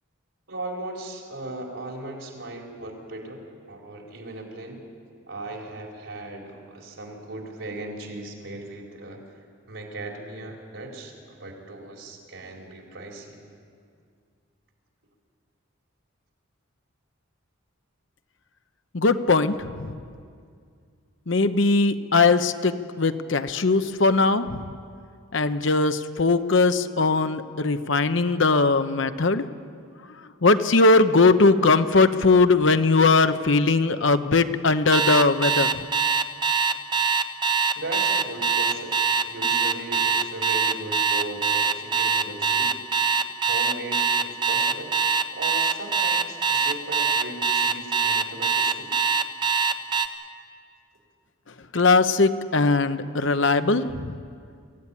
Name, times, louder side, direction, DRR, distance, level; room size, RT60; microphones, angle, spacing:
voice 1, 0.5-4.8 5.3-9.2 9.7-13.4 37.7-42.7 43.5-44.9 45.3-48.9, right 2 dB, 65° right, 0 dB, 4.2 m, -37 dB
voice 2, 18.9-20.0 21.3-24.6 25.3-29.4 30.4-35.8 51.7-54.1, left 3 dB, 60° left, 10 dB, 0.8 m, -20 dB
Alarm, 34.9-50.1, right 5 dB, 20° right, 0.9 m, -22 dB
24.0 x 15.0 x 9.9 m, 2.2 s
head